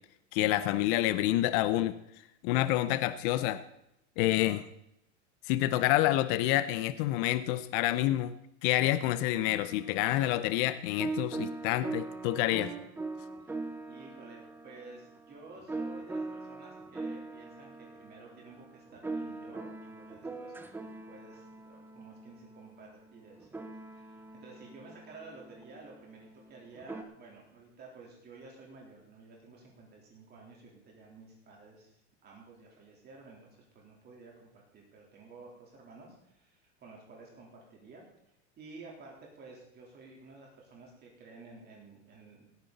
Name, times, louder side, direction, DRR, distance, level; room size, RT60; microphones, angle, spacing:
voice 1, 0.3-1.9 2.4-3.6 4.2-4.7 5.5-8.3 8.6-12.7, left 14 dB, 45° left, 13 dB, 0.7 m, -28 dB
sound 1, 9.2-27.0, right 3 dB, 5° right, 0.8 m, -42 dB
voice 2, 13.9-20.6 21.1-38.0 38.6-42.5, right 3 dB, 25° right, -2 dB, 3.7 m, -52 dB
17.0 x 9.7 x 4.1 m, 0.81 s
supercardioid pair, 140°, 36 cm